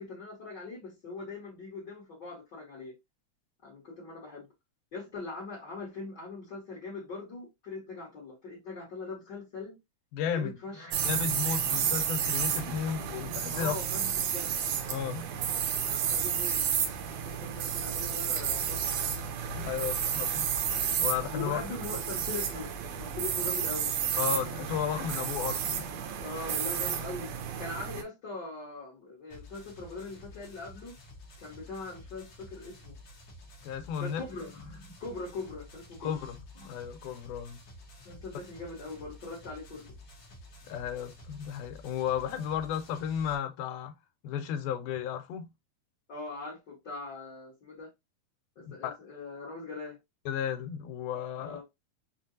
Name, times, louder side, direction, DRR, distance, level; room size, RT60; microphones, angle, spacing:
voice 1, 0.0-2.9 3.6-4.5 4.9-9.7 10.3-11.1 13.5-14.5 15.8-16.6 17.1-19.2 21.3-22.7 23.0-23.9 26.2-27.3 27.6-31.0 31.4-32.9 34.0-36.1 36.6-36.7 38.0-39.9 46.1-47.9 48.5-50.0 51.4-51.6, left 3 dB, 50° left, 1.5 m, -41 dB
voice 2, 10.1-10.5 11.1-13.7 14.9-15.3 19.5-20.5 21.0-21.6 24.2-25.9 33.6-34.2 36.0-36.4 36.7-37.6 40.7-43.9 44.2-45.5 48.6-49.0 50.3-51.6, left 8 dB, 90° left, 2.2 m, -33 dB
sound 1, 10.9-28.0, right 8 dB, 80° right, 1.6 m, -31 dB
sound 2, 29.3-43.3, left 1 dB, 65° left, 1.2 m, -51 dB
5.6 x 2.5 x 2.6 m
omnidirectional pair, 3.6 m